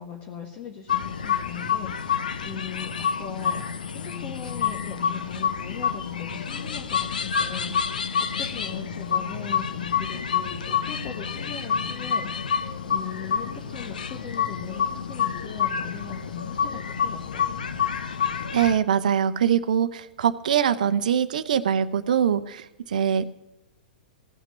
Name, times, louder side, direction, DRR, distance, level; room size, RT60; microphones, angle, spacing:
voice 1, 0.0-2.9 3.2-8.0 8.4-17.5, left 7 dB, 30° left, 1 dB, 1.5 m, -39 dB
sound 1, 0.9-18.8, left 7 dB, 65° left, 0.9 m, -28 dB
voice 2, 18.5-23.3, right 8 dB, 60° right, 12 dB, 0.8 m, -23 dB
17.0 x 5.9 x 9.4 m, 0.93 s
figure-of-eight pair, 105°, 5 cm